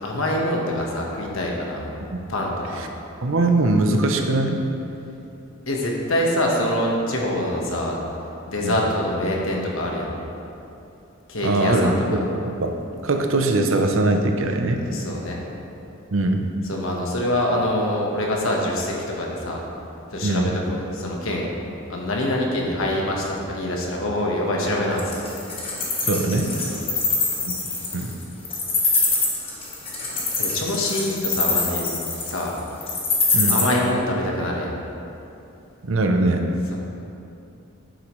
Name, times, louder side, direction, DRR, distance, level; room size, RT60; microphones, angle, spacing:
voice 1, 0.0-1.9 2.3-2.8 5.7-8.0 8.5-10.1 11.3-12.2 14.9-15.4 16.6-19.6 20.1-21.6 21.9-25.0 26.7-27.1 28.9-29.2 30.4-31.9 32.2-32.6 33.5-34.7 36.7-36.8, left 1 dB, 65° left, -1 dB, 1.3 m, -25 dB
voice 2, 3.2-4.6 8.6-8.8 11.4-12.7 13.0-14.8 16.1-16.5 20.2-20.5 26.0-26.5 27.9-28.1 33.3-33.6 35.8-36.4, right 2 dB, 60° right, 4 dB, 0.7 m, -21 dB
Wild animals, 25.0-33.6, left 4 dB, 25° left, 1.3 m, -23 dB
9.2 x 7.9 x 3.1 m, 2.7 s
head